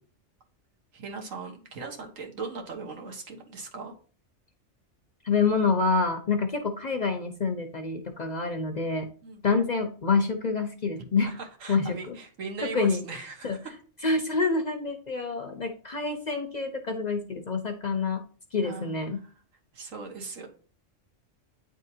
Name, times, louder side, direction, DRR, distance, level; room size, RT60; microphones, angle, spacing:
voice 1, 0.9-3.9 9.2-9.4 11.2-13.7 18.6-19.0 19.7-20.5, right 4 dB, 90° right, 3 dB, 1.6 m, -39 dB
voice 2, 5.2-9.1 9.4-11.3 11.7-12.2 12.6-13.0 13.4-13.6 14.0-18.2 18.5-19.2, left 4 dB, 45° left, 5 dB, 0.6 m, -27 dB
9.2 x 3.6 x 2.8 m, 0.41 s
omnidirectional pair, 1.3 m